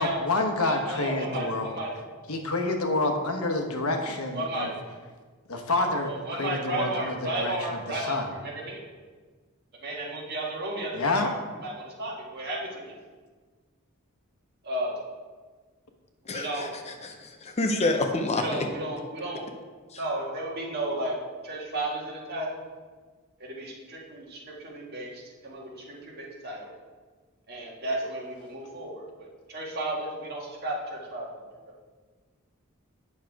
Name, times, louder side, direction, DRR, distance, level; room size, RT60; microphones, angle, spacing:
voice 1, 0.0-1.7 2.3-4.7 5.5-8.3 10.9-11.3, left 2 dB, 80° left, 4 dB, 1.1 m, -28 dB
voice 2, 0.6-1.9 4.3-4.7 5.8-8.8 9.8-11.3 11.6-12.8 14.6-15.0 16.3-16.7 18.3-19.5 20.0-21.1 21.4-22.6 23.4-26.7 27.5-31.3, right 1 dB, 50° right, -3 dB, 1.8 m, -33 dB
voice 3, 16.3-18.7 19.9-20.0, left 2 dB, 30° left, 5 dB, 0.6 m, -28 dB
8.4 x 6.4 x 4.7 m, 1.4 s
head